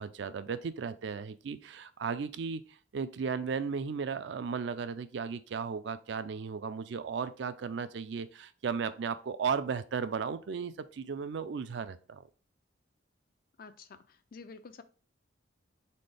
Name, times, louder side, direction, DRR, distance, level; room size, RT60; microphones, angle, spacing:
voice 1, 0.0-12.3, right 6 dB, 60° right, 0.4 m, -35 dB
voice 2, 13.6-14.8, left 4 dB, 45° left, 0.4 m, -50 dB
4.2 x 3.8 x 3.3 m
head